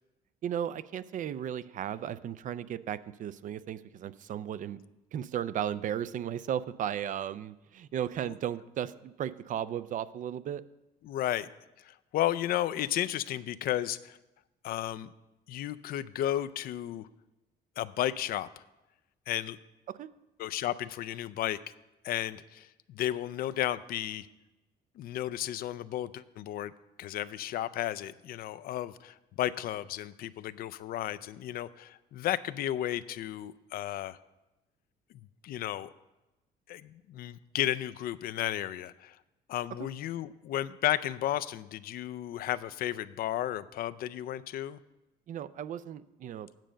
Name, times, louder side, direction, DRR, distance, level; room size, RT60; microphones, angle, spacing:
voice 1, 0.4-4.8 5.1-10.6 19.9-20.1 45.3-46.5, right 10 dB, 50° right, 15 dB, 0.4 m, -35 dB
voice 2, 11.0-11.5 11.9-14.2 14.6-15.1 15.5-17.1 17.8-18.5 19.3-19.6 20.4-21.6 22.0-24.3 25.0-26.7 27.0-34.2 35.4-35.9 36.7-39.2 39.5-44.8, left 12 dB, 60° left, 15 dB, 0.4 m, -33 dB
9.1 x 5.1 x 7.5 m, 0.99 s
cardioid pair, 110°, 17 cm